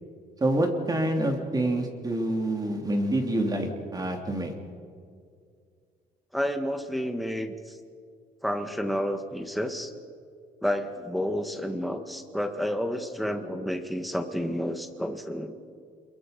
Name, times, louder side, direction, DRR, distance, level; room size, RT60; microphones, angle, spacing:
voice 1, 0.4-4.5, right 1 dB, 20° right, 3 dB, 3.3 m, -27 dB
voice 2, 6.3-7.8 8.4-9.9 10.6-15.6, equal, ahead, 6 dB, 1.8 m, -30 dB
28.0 x 22.5 x 5.4 m, 2.2 s
cardioid pair, 110°, 17 cm